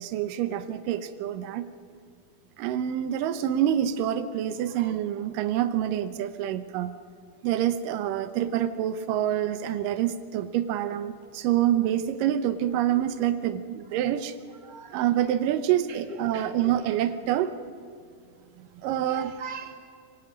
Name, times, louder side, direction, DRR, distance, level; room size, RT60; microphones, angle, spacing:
voice 1, 0.0-1.7 2.6-6.9 7.4-14.3 14.9-17.5 18.8-19.3, right 11 dB, 80° right, 10 dB, 2.5 m, -26 dB
voice 2, 4.7-5.3 10.4-10.6 13.9-14.0 14.5-15.0 15.9-17.0 19.0-19.7, right 5 dB, 20° right, 3 dB, 1.3 m, -42 dB
24.0 x 19.5 x 8.7 m, 2.2 s
omnidirectional pair, 3.8 m